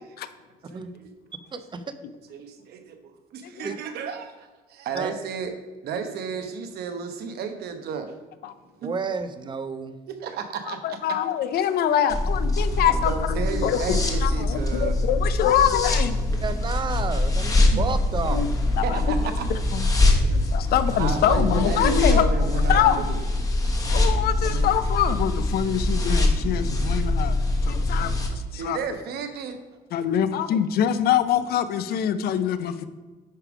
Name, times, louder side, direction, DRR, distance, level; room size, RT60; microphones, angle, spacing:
voice 1, 0.7-1.1 2.3-5.5 5.8-8.1 8.8-8.9 10.1-11.2 13.0-14.9 17.7-17.8 18.8-19.4 20.9-23.2 28.6-29.6, right 6 dB, 70° right, 7 dB, 1.0 m, -32 dB
voice 2, 1.5-1.8 3.6-3.7 4.9-5.1 8.8-10.0 16.4-18.5 24.5-24.6, right 5 dB, 30° right, 11 dB, 0.6 m, -31 dB
voice 3, 10.7-16.2 18.3-18.5 18.8-19.1 19.5-19.9 20.3-22.3 22.7-23.0 23.9-27.4 27.7-28.8 29.9-32.8, left 9 dB, 65° left, 12 dB, 0.6 m, -24 dB
sound 1, 12.1-28.3, left 2 dB, 20° left, 1.2 m, -23 dB
10.0 x 3.4 x 4.9 m, 1.3 s
cardioid pair, 110°, 17 cm